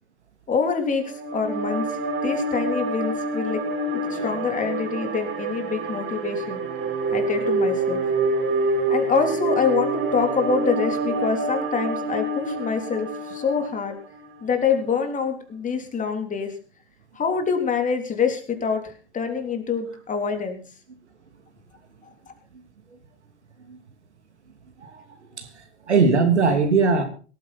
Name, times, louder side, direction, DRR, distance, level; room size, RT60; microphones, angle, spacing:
voice 1, 0.5-3.6 3.9-6.6 7.1-8.0 8.9-14.0 14.4-16.5 17.2-20.6, left 5 dB, 25° left, 3.6 m, -25 dB
sound 1, 0.9-14.2, right 2 dB, 40° right, 5.0 m, -27 dB
voice 2, 25.9-27.0, right 4 dB, 85° right, 2.9 m, -20 dB
18.0 x 14.0 x 4.2 m
hypercardioid pair, 95°, 33 cm